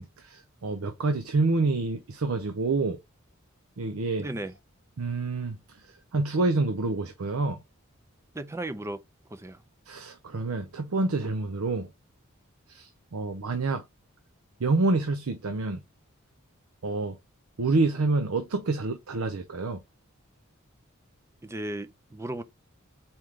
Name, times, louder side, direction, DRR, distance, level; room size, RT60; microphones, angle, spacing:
voice 1, 0.0-3.0 3.8-4.3 5.0-7.6 9.9-11.9 12.7-13.8 14.6-15.8 16.8-17.2 17.6-19.8, right 3 dB, 75° right, 0.6 m, -28 dB
voice 2, 4.2-4.5 8.3-9.0 9.3-9.6 21.4-22.4, right 1 dB, 15° right, 0.5 m, -35 dB
4.3 x 3.2 x 3.6 m
head